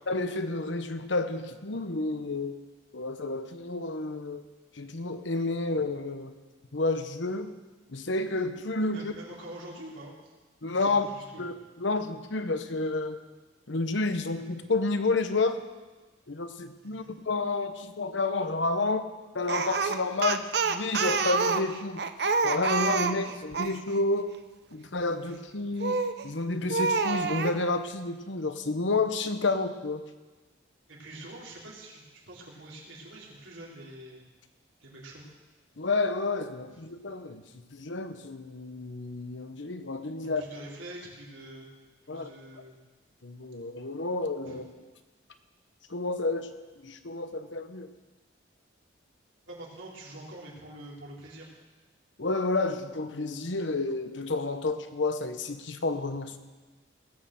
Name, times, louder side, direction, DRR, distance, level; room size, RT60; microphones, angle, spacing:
voice 1, 0.1-2.6 2.9-4.4 4.7-6.3 6.7-7.6 7.9-9.1 10.6-11.1 11.4-13.2 13.7-15.6 16.3-22.0 22.4-24.3 24.7-30.1 35.8-37.4 37.7-40.4 42.1-42.3 43.2-44.6 45.9-46.5 46.8-47.9 52.2-56.4, left 3 dB, 70° left, 9 dB, 1.0 m, -30 dB
voice 2, 8.9-10.3 10.7-11.5 16.8-17.1 30.9-34.2 34.8-35.2 40.2-41.7 42.0-42.8 44.4-44.6 49.5-51.5, right 1 dB, 80° right, -4 dB, 3.7 m, -45 dB
Speech, 19.5-23.8 25.8-26.2 26.7-27.6, right 4 dB, 55° right, 0.7 m, -27 dB
18.5 x 6.6 x 7.6 m, 1.2 s
head